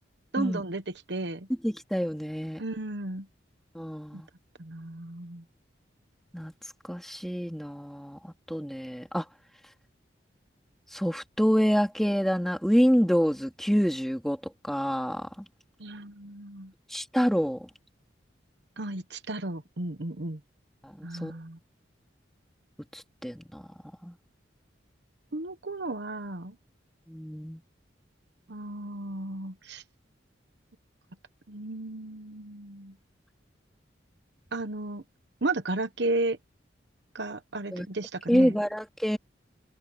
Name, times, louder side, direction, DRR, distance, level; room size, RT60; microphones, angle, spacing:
voice 1, 0.3-1.5 2.6-3.3 4.1-4.2 4.6-5.4 15.8-16.7 18.8-20.4 21.0-21.6 25.3-26.5 28.5-29.8 31.5-32.9 34.5-35.0 35.4-36.4 37.1-38.6, right 2 dB, 65° right, 1.1 m, -34 dB
voice 2, 1.6-2.6 3.7-4.3 6.3-6.5 6.9-9.2 10.9-14.4 14.6-15.3 16.9-17.7 20.8-21.3 22.9-23.6 24.0-24.1 27.1-27.6 37.7-37.9 38.3-39.2, equal, ahead, 3.8 m, -27 dB
open air
head